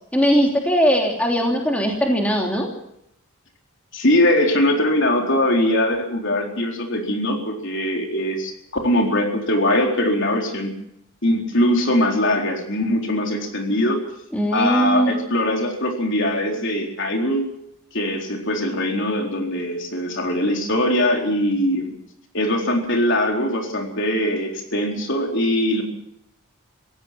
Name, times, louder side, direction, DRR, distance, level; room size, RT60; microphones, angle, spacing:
voice 1, 0.1-2.7 14.3-15.2, equal, 5° left, 0 dB, 3.1 m, -19 dB
voice 2, 3.9-8.5 8.8-10.7 11.2-14.0 14.5-17.5 17.9-21.9 22.3-25.8, left 1 dB, 55° left, 1 dB, 4.2 m, -21 dB
25.5 x 17.0 x 6.0 m, 0.76 s
head